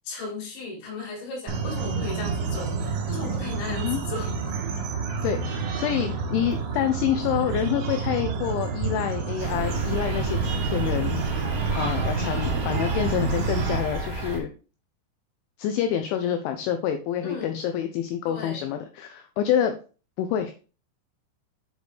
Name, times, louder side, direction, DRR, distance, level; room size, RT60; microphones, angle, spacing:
voice 1, 0.0-4.5 17.2-17.6 18.3-18.7, left 3 dB, 65° left, -2 dB, 4.2 m, -36 dB
sound 1, 1.5-13.8, right 5 dB, 85° right, 2.2 m, -29 dB
voice 2, 3.7-4.0 5.2-14.5 15.6-19.8 20.2-20.5, left 9 dB, 85° left, 7 dB, 2.7 m, -27 dB
sound 2, 9.4-14.4, right 1 dB, 55° right, 0.9 m, -31 dB
7.9 x 5.1 x 3.3 m, 0.36 s
omnidirectional pair, 6.0 m